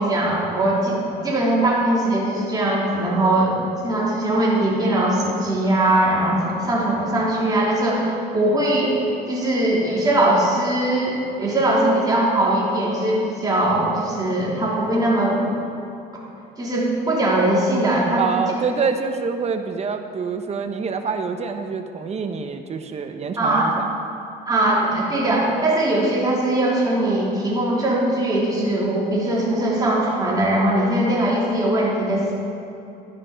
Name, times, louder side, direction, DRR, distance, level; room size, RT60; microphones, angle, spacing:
voice 1, 0.0-9.0 9.3-15.6 16.6-18.2 23.4-23.7 24.5-32.3, right 1 dB, 20° right, -5 dB, 3.4 m, -20 dB
voice 2, 18.2-23.9, right 5 dB, 40° right, 7 dB, 1.1 m, -26 dB
12.5 x 10.5 x 5.2 m, 2.8 s
cardioid pair, 110°, 17 cm